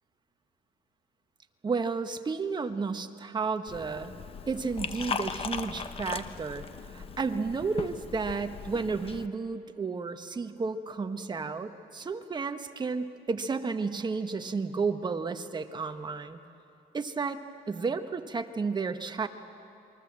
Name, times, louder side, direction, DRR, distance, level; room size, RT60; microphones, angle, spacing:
voice 1, 1.6-4.2 4.5-16.4 16.9-17.4 17.7-19.3, right 4 dB, 25° right, 8 dB, 1.2 m, -32 dB
Liquid, 3.7-9.3, left 6 dB, 35° left, 0.9 m, -38 dB
27.5 x 21.5 x 7.5 m, 2.8 s
cardioid pair, 110°, 17 cm